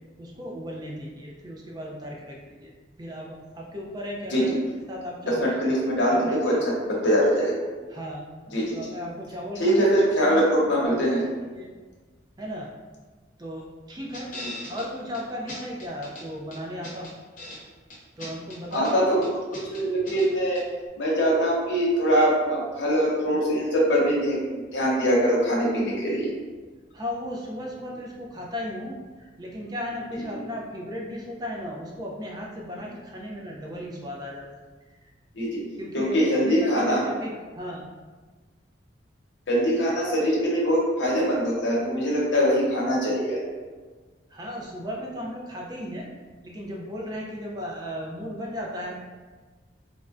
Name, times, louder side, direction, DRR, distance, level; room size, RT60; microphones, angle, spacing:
voice 1, 0.2-2.7 3.0-4.5 4.9-5.5 6.1-6.6 7.9-8.3 8.7-10.5 10.9-11.1 11.5-11.7 12.4-12.7 13.4-14.3 14.7-17.2 18.2-19.1 26.9-34.4 34.9-35.0 35.8-37.8 44.3-46.1 46.4-49.0, equal, 20° right, -2 dB, 0.4 m, -35 dB
voice 2, 5.3-7.5 8.5-8.8 9.6-11.2 14.4-14.5 18.7-19.2 19.5-20.6 21.0-26.3 35.3-35.6 35.9-37.0 39.5-43.4, equal, 80° left, -4 dB, 0.8 m, -23 dB
sound 1, 14.1-14.9 15.1-15.2 15.5-16.2 16.5-17.6 17.9-18.9 19.2-20.3 20.5-20.6, left 1 dB, 45° left, 0.7 m, -39 dB
3.6 x 2.1 x 2.4 m, 1.4 s
head